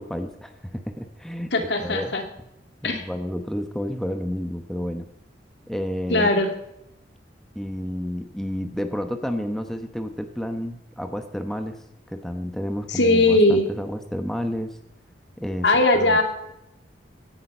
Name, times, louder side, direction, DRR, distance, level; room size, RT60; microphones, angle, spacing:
voice 1, 0.0-1.5 1.8-2.2 2.8-5.1 5.7-6.3 7.5-11.8 12.1-14.8 15.4-15.7 15.9-16.2, equal, ahead, 6 dB, 1.0 m, -30 dB
voice 2, 1.5-2.2 2.8-3.1 6.1-6.5 12.9-13.6 15.6-16.2, left 2 dB, 70° left, 5 dB, 2.3 m, -19 dB
16.5 x 10.5 x 5.6 m, 0.82 s
head